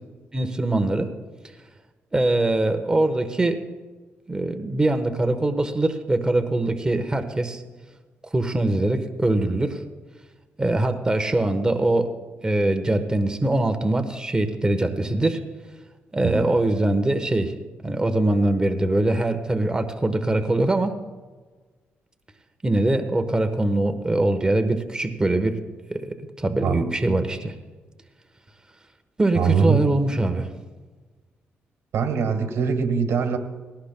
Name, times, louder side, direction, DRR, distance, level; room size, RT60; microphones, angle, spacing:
voice 1, 0.3-1.1 2.1-3.6 4.3-7.6 8.3-9.8 10.6-12.1 12.4-15.4 16.1-17.5 17.8-20.9 22.6-25.6 25.9-27.5 29.2-30.5, right 2 dB, 15° right, 6 dB, 1.1 m, -22 dB
voice 2, 16.2-16.6 26.6-26.9 29.3-29.8 31.9-33.4, right 6 dB, 75° right, 6 dB, 1.6 m, -22 dB
19.0 x 17.5 x 2.2 m, 1.3 s
cardioid pair, 85°, 5 cm